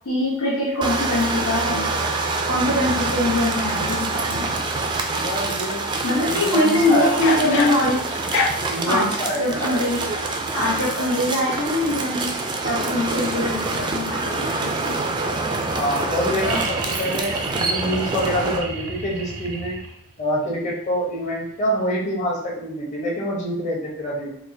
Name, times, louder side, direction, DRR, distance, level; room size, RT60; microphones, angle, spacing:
voice 1, 0.0-1.9 2.5-4.6 6.0-8.1 8.9-9.1 9.4-10.0 10.5-12.3 12.6-15.0, left 1 dB, 80° left, -8 dB, 1.2 m, -23 dB
sound 1, 0.8-18.6, right 3 dB, 20° right, 0.3 m, -26 dB
voice 2, 5.1-5.8 6.3-7.1 7.4-7.5 8.7-9.9 15.7-19.8 20.2-24.3, equal, 35° left, -5 dB, 1.0 m, -26 dB
sound 2, 7.2-8.8 9.9-13.7 14.0-14.4, left 3 dB, 60° left, 0.6 m, -30 dB
sound 3, 16.4-20.2 21.9-22.0, right 4 dB, 85° right, 0.5 m, -32 dB
4.4 x 2.3 x 2.7 m, 0.68 s
head